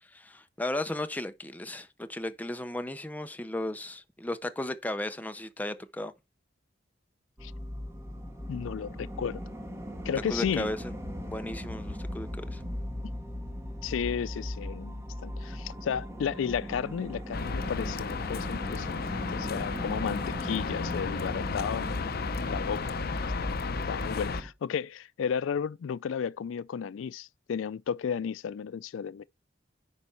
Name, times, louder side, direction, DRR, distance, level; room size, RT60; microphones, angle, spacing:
voice 1, 0.1-6.1 10.3-10.8 11.3-12.6, left 1 dB, 10° left, 0.7 m, -35 dB
sound 1, 7.4-24.5, equal, 15° right, 1.4 m, -38 dB
voice 2, 8.5-9.4 10.0-10.7 13.8-22.1 22.4-22.8 23.4-23.5 23.8-29.2, left 7 dB, 85° left, 0.4 m, -33 dB
sound 2, 17.3-24.4, left 4 dB, 55° left, 0.7 m, -33 dB
9.9 x 5.2 x 4.5 m
head